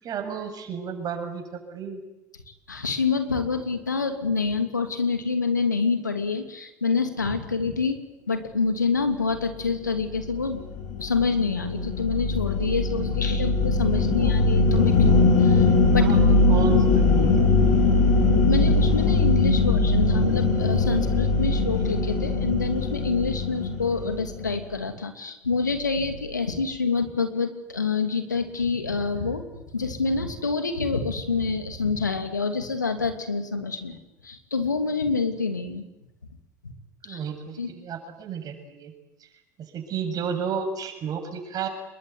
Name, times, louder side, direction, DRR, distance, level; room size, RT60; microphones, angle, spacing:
voice 1, 0.0-2.0 13.4-13.5 14.1-14.3 16.0-17.3 37.0-38.9 39.6-41.7, right 6 dB, 40° right, 5 dB, 7.5 m, -33 dB
voice 2, 2.7-8.0 8.3-10.6 11.0-15.6 15.9-16.1 18.4-29.4 29.7-34.0 34.2-35.8 37.1-37.2 37.6-37.7, left 4 dB, 90° left, 7 dB, 2.8 m, -27 dB
sound 1, 10.1-24.6, left 3 dB, 60° left, 7.1 m, -21 dB
27.5 x 22.0 x 9.7 m, 0.97 s
figure-of-eight pair, 70°, 9 cm